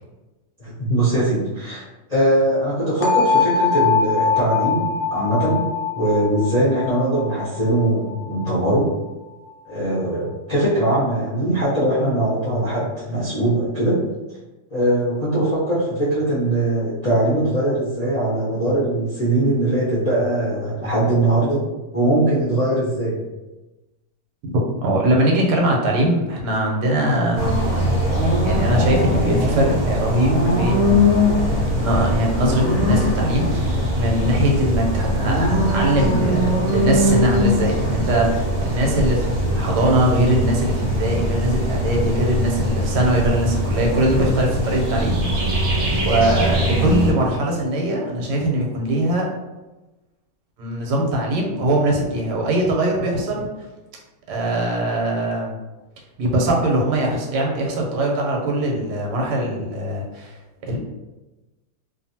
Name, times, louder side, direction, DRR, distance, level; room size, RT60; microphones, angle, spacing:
voice 1, 0.6-8.9 9.7-14.0 14.7-21.6 21.9-23.2, right 1 dB, 50° left, -10 dB, 0.4 m, -21 dB
sound 1, 3.0-8.9, left 5 dB, 70° left, 1.0 m, -22 dB
voice 2, 24.5-27.6 28.4-45.2 45.5-49.3 50.6-53.5 54.3-55.5 56.2-60.4 60.6-60.8, right 1 dB, 85° right, -1 dB, 1.3 m, -21 dB
sound 2, 27.3-47.1, equal, 70° right, 0.4 m, -21 dB
2.7 x 2.5 x 2.7 m, 1.1 s
omnidirectional pair, 1.8 m